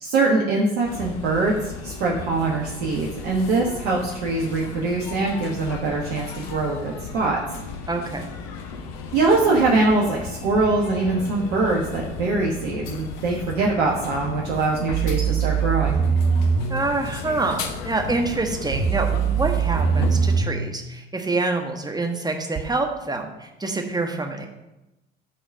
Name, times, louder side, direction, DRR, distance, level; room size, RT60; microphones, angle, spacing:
voice 1, 0.0-7.4 9.1-16.0, right 3 dB, 65° right, -2 dB, 1.3 m, -23 dB
sound 1, 0.8-20.4, left 5 dB, 60° left, 1.0 m, -35 dB
voice 2, 7.9-8.3 16.7-24.5, right 3 dB, 10° right, 3 dB, 1.4 m, -26 dB
sound 2, 14.9-16.9 18.7-20.7 22.6-22.7, right 6 dB, 40° right, 1.0 m, -22 dB
11.0 x 4.0 x 5.3 m, 0.96 s
figure-of-eight pair, 55°, 34 cm